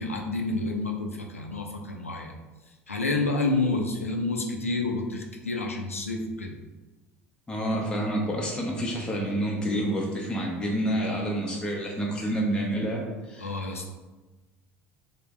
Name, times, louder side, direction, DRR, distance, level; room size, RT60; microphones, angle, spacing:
voice 1, 0.0-2.3 2.9-6.6 13.4-13.9, left 2 dB, 90° left, 2 dB, 0.3 m, -29 dB
voice 2, 7.5-13.5, right 1 dB, 10° left, -2 dB, 0.5 m, -28 dB
3.3 x 2.0 x 3.2 m, 1.2 s
figure-of-eight pair, 65°, 7 cm